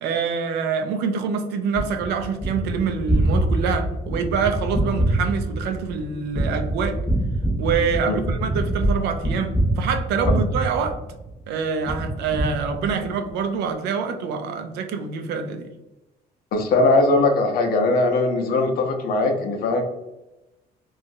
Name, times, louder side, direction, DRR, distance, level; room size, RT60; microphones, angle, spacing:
voice 1, 0.0-7.0 7.6-11.0 11.5-15.7, right 6 dB, 85° right, 7 dB, 0.4 m, -26 dB
Gunshot gunfire, 1.8-11.4 11.9-13.3, right 1 dB, 10° left, 0.7 m, -25 dB
voice 2, 16.5-19.8, left 2 dB, 65° left, 3 dB, 0.6 m, -20 dB
2.9 x 2.3 x 2.6 m, 0.98 s
cardioid pair, 110°, 17 cm